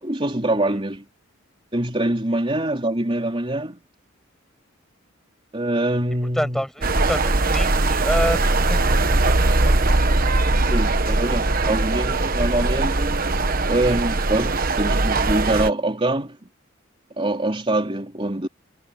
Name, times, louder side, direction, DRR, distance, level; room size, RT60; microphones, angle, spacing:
voice 1, 0.0-1.0 1.7-3.8 5.5-6.6 10.7-13.2 13.7-16.4 17.2-18.5, right 1 dB, 25° right, 3.8 m, -24 dB
voice 2, 6.4-9.8, equal, ahead, 7.9 m, -28 dB
sound 1, 6.8-15.7, right 2 dB, 45° right, 1.2 m, -20 dB
head